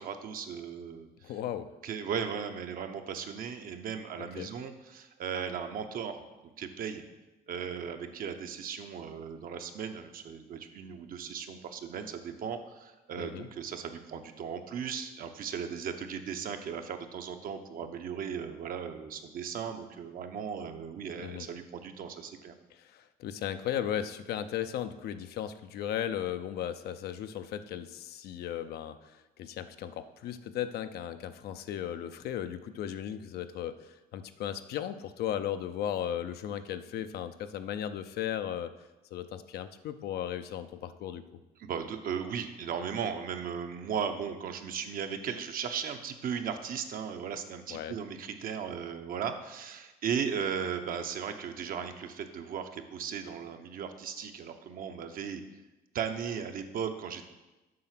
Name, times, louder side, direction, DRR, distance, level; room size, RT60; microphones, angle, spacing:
voice 1, 0.0-1.3 1.8-6.2 6.6-7.0 7.5-22.5 41.6-55.4 55.9-57.3, right 7 dB, 60° right, 6 dB, 0.9 m, -37 dB
voice 2, 1.2-1.7 4.4-4.5 13.2-13.5 21.2-21.5 22.7-38.7 39.1-41.2 47.7-48.0, left 10 dB, 70° left, 10 dB, 0.6 m, -36 dB
7.6 x 5.6 x 5.9 m, 1.1 s
cardioid pair, 110°, 17 cm